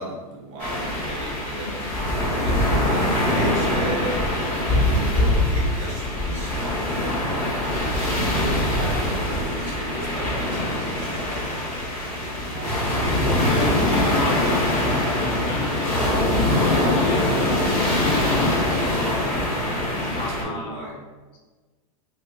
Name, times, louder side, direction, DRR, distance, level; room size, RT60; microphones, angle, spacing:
voice 1, 0.0-7.5 8.0-11.8 12.5-12.9 13.4-13.9 14.2-14.3 20.1-20.9, right 1 dB, 40° right, -2 dB, 0.9 m, -35 dB
sound 1, 0.6-20.4, left 1 dB, 10° left, 1.2 m, -23 dB
voice 2, 13.3-19.4 19.7-20.9, left 3 dB, 30° left, -1 dB, 0.5 m, -32 dB
3.2 x 2.4 x 3.5 m, 1.3 s
supercardioid pair, 135°, 18 cm